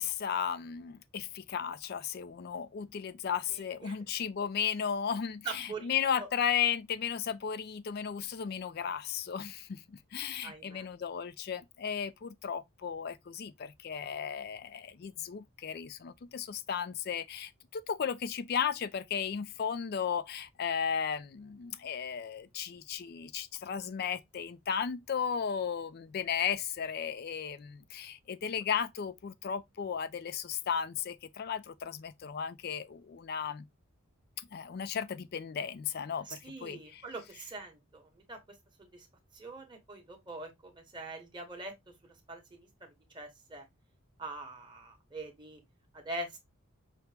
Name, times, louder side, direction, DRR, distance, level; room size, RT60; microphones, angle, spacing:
voice 1, 0.0-33.7 34.4-37.0, left 7 dB, 45° left, 0.3 m, -35 dB
voice 2, 3.5-4.0 5.4-5.9 6.2-6.3 10.4-10.9 36.2-39.1 39.3-41.7 42.0-43.6 44.2-45.6 45.9-46.4, right 3 dB, 20° right, 1.0 m, -43 dB
5.7 x 2.1 x 3.2 m
head